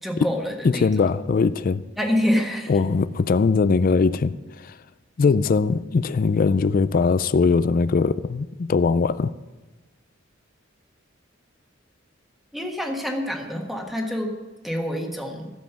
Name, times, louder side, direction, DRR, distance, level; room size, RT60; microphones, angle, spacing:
voice 1, 0.0-0.9 2.0-2.8 12.5-14.3 14.6-15.5, equal, ahead, 1.4 m, -26 dB
voice 2, 0.6-1.9 2.7-4.8 5.2-9.3, left 4 dB, 45° left, 0.4 m, -21 dB
12.5 x 7.4 x 7.0 m
head